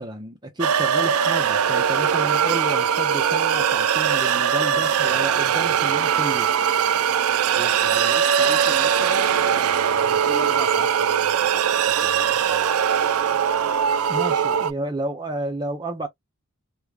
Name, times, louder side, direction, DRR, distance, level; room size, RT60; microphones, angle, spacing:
voice 1, 0.0-6.5 14.1-16.1, right 1 dB, 20° right, 0.6 m, -31 dB
sound 1, 0.6-14.7, right 8 dB, 80° right, 0.4 m, -21 dB
voice 2, 4.7-5.0 7.5-9.5 9.8-12.7, equal, 15° left, 0.9 m, -38 dB
3.5 x 2.3 x 3.2 m
head